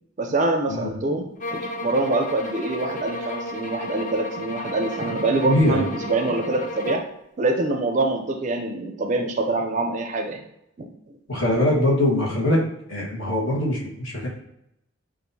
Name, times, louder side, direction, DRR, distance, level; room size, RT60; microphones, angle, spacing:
voice 1, 0.2-7.0 7.4-10.4 10.8-10.9, right 2 dB, 35° right, 5 dB, 0.4 m, -25 dB
sound 1, 1.4-7.2, left 1 dB, 35° left, 0.5 m, -33 dB
voice 2, 5.4-5.8 11.3-12.6 12.9-14.3, left 1 dB, 65° left, -4 dB, 1.3 m, -22 dB
6.1 x 2.5 x 2.7 m, 0.82 s
head